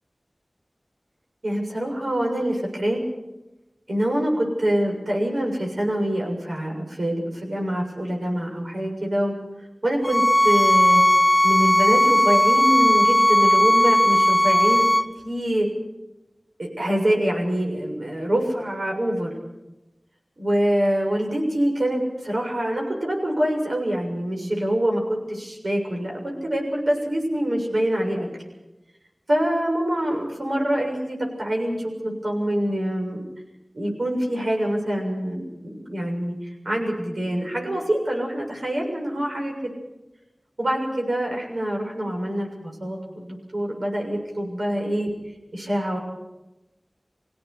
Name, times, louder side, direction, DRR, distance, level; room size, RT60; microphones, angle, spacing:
voice 1, 1.4-3.0 3.9-9.4 9.8-11.0 11.4-14.8 15.2-15.7 16.6-19.3 20.4-25.0 25.3-28.3 29.3-33.2 33.7-36.4 36.7-39.5 40.6-45.1 45.5-46.0, right 1 dB, 80° right, 0 dB, 7.0 m, -25 dB
sound 1, 10.0-15.1, equal, 40° left, 1.1 m, -17 dB
24.0 x 17.0 x 8.3 m, 0.99 s
wide cardioid pair, 40°, 0 cm